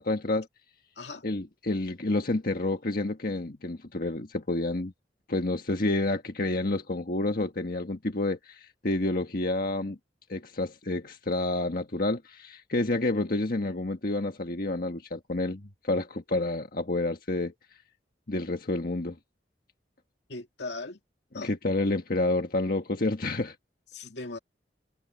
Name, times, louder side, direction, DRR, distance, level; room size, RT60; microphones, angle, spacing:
voice 1, 0.1-0.5 1.2-4.9 5.3-10.0 10.3-17.5 18.3-19.2 21.3-23.5, left 2 dB, 55° left, 1.5 m, -29 dB
voice 2, 20.3-21.0 21.3-21.5 23.9-24.4, left 3 dB, 75° left, 2.4 m, -38 dB
head